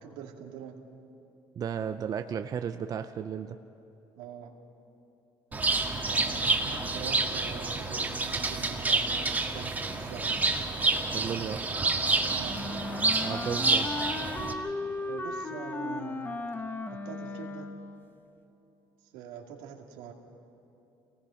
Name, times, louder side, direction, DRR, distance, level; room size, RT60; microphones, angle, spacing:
voice 1, 0.0-0.8 4.2-4.5 5.5-10.4 12.3-12.6 15.1-16.3 16.9-17.7 19.1-20.1, right 7 dB, 90° right, 1 dB, 2.4 m, -44 dB
voice 2, 1.6-3.6 11.1-11.7 13.2-13.9, right 8 dB, 40° right, 8 dB, 0.7 m, -34 dB
Bird, 5.5-14.5, right 3 dB, 15° right, 1.9 m, -28 dB
Wind instrument woodwind instrument, 12.4-18.0, left 2 dB, 20° left, 1.2 m, -36 dB
26.5 x 19.0 x 5.8 m, 2.8 s
cardioid pair, 105°, 10 cm